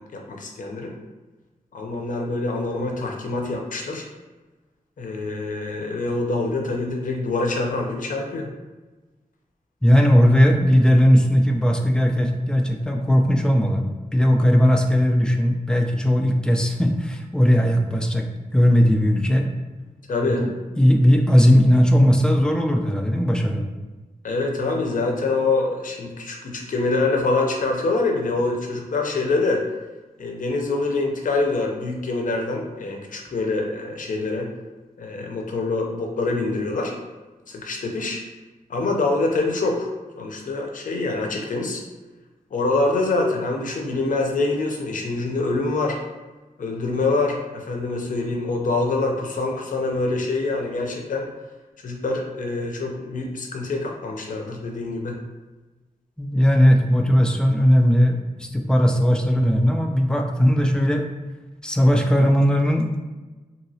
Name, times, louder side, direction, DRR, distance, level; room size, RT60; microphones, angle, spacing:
voice 1, 0.1-0.9 1.7-4.0 5.0-8.5 20.1-20.5 24.2-29.6 30.2-34.5 35.0-37.0 37.5-38.2 38.7-39.9 40.2-41.8 42.5-46.0 46.6-51.2 51.8-55.2, left 3 dB, 70° left, 1 dB, 0.6 m, -25 dB
voice 2, 9.8-18.3 18.5-19.5 20.2-23.6 56.2-61.0 61.6-63.0, equal, 5° left, 3 dB, 0.3 m, -18 dB
2.9 x 2.7 x 2.7 m, 1.2 s
wide cardioid pair, 125°, 14 cm